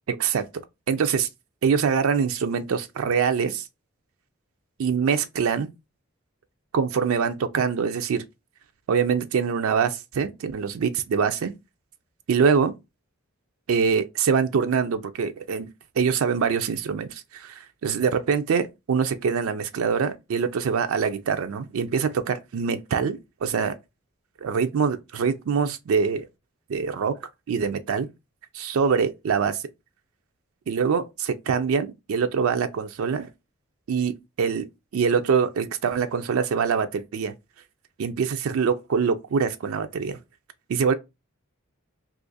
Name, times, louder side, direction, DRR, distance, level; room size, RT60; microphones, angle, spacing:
voice 1, 0.1-0.5 0.9-1.3 1.6-3.6 4.8-5.7 6.7-8.2 8.9-11.5 12.3-12.7 13.7-15.7 16.0-23.8 24.4-26.3 26.7-27.2 27.5-28.1 28.5-29.6 30.7-33.3 33.9-34.7 34.9-37.3 38.0-40.2 40.7-40.9, right 6 dB, 70° right, 0.4 m, -24 dB
2.8 x 2.5 x 3.9 m
head